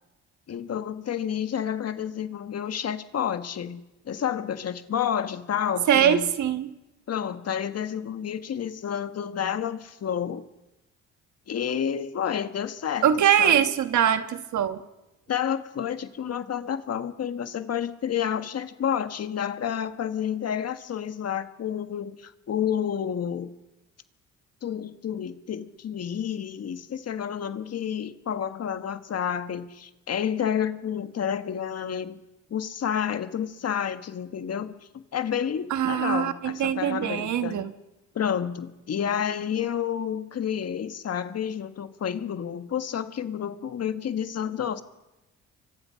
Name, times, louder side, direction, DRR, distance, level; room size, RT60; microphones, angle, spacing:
voice 1, 0.5-6.3 7.1-10.4 11.5-13.1 13.4-13.6 15.3-23.5 24.6-32.2 32.5-34.7 35.1-37.6 38.1-44.8, left 8 dB, 55° left, 10 dB, 1.6 m, -30 dB
voice 2, 5.9-6.7 13.0-14.8 35.7-37.7, right 9 dB, 70° right, 9 dB, 1.5 m, -23 dB
29.5 x 24.5 x 5.8 m, 1.0 s
cardioid pair, 90°, 30 cm